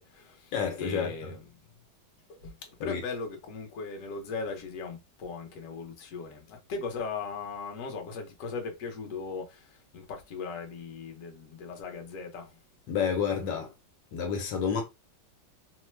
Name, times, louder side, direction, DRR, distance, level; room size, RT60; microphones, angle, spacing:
voice 1, 0.0-0.5 0.8-1.4 2.3-2.6 2.8-12.6, left 4 dB, 55° left, 1.0 m, -38 dB
voice 2, 0.5-1.3 2.8-3.0 12.9-13.7 14.1-14.8, left 6 dB, 75° left, 1.3 m, -30 dB
3.1 x 2.1 x 3.2 m
omnidirectional pair, 2.1 m